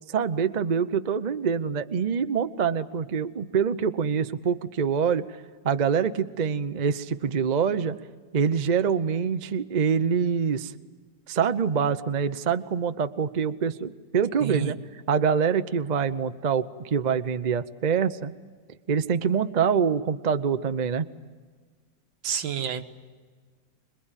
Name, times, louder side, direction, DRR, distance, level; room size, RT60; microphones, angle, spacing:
voice 1, 0.1-5.2 5.6-8.0 8.3-10.7 11.3-14.8 15.1-18.3 18.9-21.1, right 6 dB, 60° right, 11 dB, 0.4 m, -25 dB
voice 2, 14.4-14.7 22.2-22.8, right 9 dB, 85° right, 8 dB, 2.0 m, -29 dB
26.5 x 21.0 x 9.1 m, 1.5 s
omnidirectional pair, 2.0 m